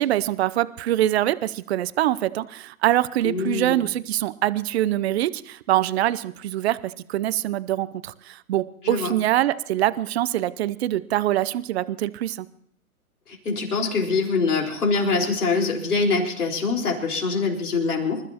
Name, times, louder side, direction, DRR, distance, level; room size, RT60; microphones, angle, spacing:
voice 1, 0.0-12.5, right 13 dB, 45° right, 16 dB, 0.6 m, -24 dB
voice 2, 3.2-3.8 8.8-9.1 13.3-18.2, left 4 dB, 85° left, 0 dB, 4.4 m, -24 dB
27.0 x 13.0 x 2.9 m, 0.68 s
hypercardioid pair, 135°, 44 cm